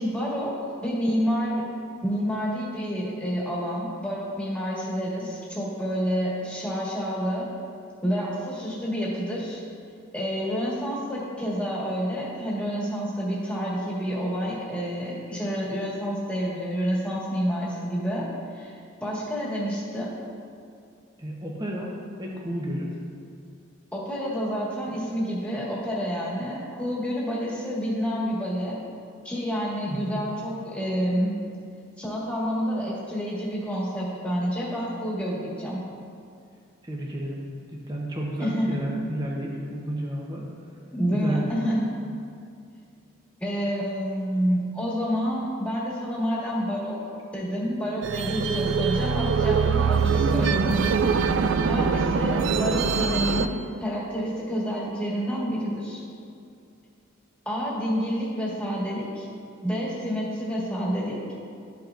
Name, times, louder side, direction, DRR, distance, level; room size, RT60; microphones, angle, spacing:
voice 1, 0.0-1.6 2.0-7.5 8.0-9.6 10.1-18.3 18.5-20.1 23.9-28.8 29.2-31.4 32.0-35.8 38.4-38.8 40.9-41.9 43.4-47.0 47.3-50.8 51.7-56.0 57.5-59.3 59.6-61.2, equal, 5° left, -7 dB, 1.6 m, -28 dB
voice 2, 21.2-21.9 22.2-22.9 29.9-30.2 36.8-37.4 37.9-40.5 41.1-41.5 50.2-50.5, right 1 dB, 20° right, -2 dB, 0.8 m, -31 dB
sound 1, 48.0-53.5, right 5 dB, 60° right, 0.3 m, -23 dB
12.5 x 5.7 x 2.5 m, 2.4 s
head